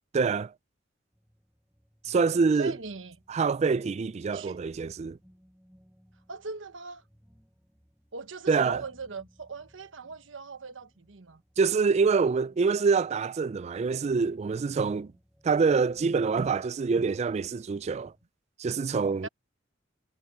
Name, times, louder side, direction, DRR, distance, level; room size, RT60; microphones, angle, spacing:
voice 1, 0.1-0.5 2.0-2.8 3.3-5.2 8.5-8.8 11.6-15.1 15.4-18.1 18.6-19.3, right 5 dB, 35° right, 0.3 m, -25 dB
sound 1, 1.1-18.3, equal, 5° right, 5.1 m, -62 dB
voice 2, 2.6-3.2 4.3-4.6 6.3-7.0 8.1-11.4 19.2-19.3, right 4 dB, 80° right, 1.2 m, -40 dB
head